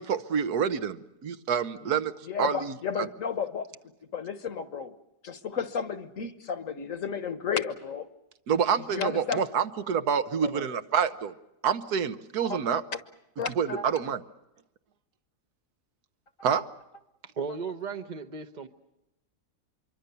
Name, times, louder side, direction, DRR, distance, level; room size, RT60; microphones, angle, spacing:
voice 1, 0.0-3.1 8.5-11.4 11.6-12.8 13.6-14.2 16.4-16.7, right 7 dB, 75° right, 12 dB, 1.6 m, -28 dB
voice 2, 2.3-3.7 4.1-4.9 5.2-8.1 8.9-9.5 10.4-10.7 12.4-12.6 13.4-13.8, left 6 dB, 55° left, 12 dB, 1.5 m, -32 dB
voice 3, 17.2-18.7, right 5 dB, 35° right, 6 dB, 0.9 m, -35 dB
25.5 x 23.5 x 6.9 m, 0.91 s
omnidirectional pair, 1.7 m